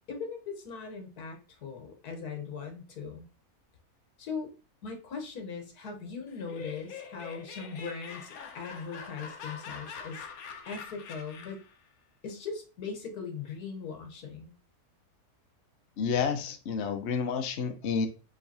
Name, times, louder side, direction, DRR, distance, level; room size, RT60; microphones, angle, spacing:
voice 1, 0.0-3.2 4.2-4.5 4.8-10.2 10.7-11.6 12.2-14.5, left 5 dB, 90° left, 4 dB, 1.7 m, -39 dB
Laughter, 6.3-11.7, left 6 dB, 70° left, 1.2 m, -44 dB
voice 2, 16.0-18.1, left 6 dB, 55° left, 6 dB, 0.9 m, -30 dB
5.0 x 3.8 x 2.8 m, 0.33 s
omnidirectional pair, 1.6 m